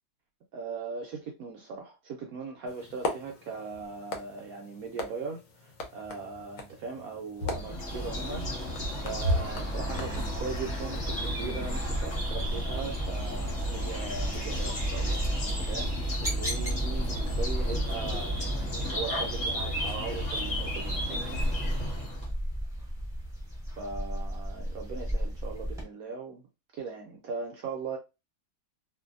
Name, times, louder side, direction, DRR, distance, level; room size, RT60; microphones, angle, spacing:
voice 1, 0.5-8.5 9.0-15.2 15.6-21.4 23.8-26.5 26.7-28.0, right 5 dB, 70° right, 0.9 m, -39 dB
sound 1, 2.7-11.3, left 1 dB, 65° left, 0.9 m, -37 dB
sound 2, 7.4-22.3, equal, 30° left, 0.9 m, -32 dB
sound 3, 11.7-25.8, equal, 5° right, 0.7 m, -36 dB
2.6 x 2.6 x 2.5 m
omnidirectional pair, 1.8 m